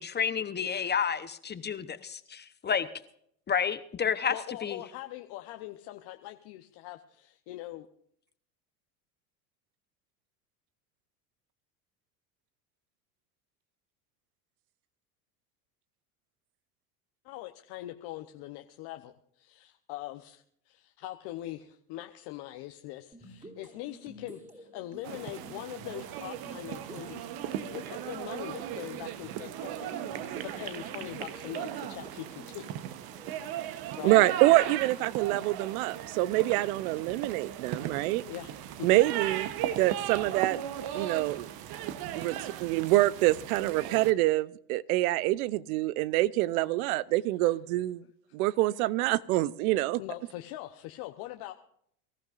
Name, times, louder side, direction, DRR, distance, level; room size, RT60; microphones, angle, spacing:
voice 1, 0.0-2.8 3.5-4.3 4.6-4.8, left 7 dB, 20° left, 12 dB, 0.9 m, -30 dB
voice 2, 4.3-7.9 17.2-32.8 34.0-34.2 38.2-38.5 38.8-39.0 40.9-41.1 42.2-42.3 50.0-51.5, left 15 dB, 55° left, 5 dB, 1.0 m, -42 dB
sound 1, 23.1-33.4, equal, 15° right, 3.2 m, -51 dB
sound 2, 25.0-44.1, right 11 dB, 55° right, 1.1 m, -37 dB
voice 3, 34.0-38.2 38.8-39.5 39.8-40.6 40.9-41.5 42.2-48.0 48.3-50.0, right 17 dB, 70° right, 19 dB, 0.7 m, -26 dB
24.5 x 14.5 x 2.6 m, 0.68 s
hypercardioid pair, 90°, 46 cm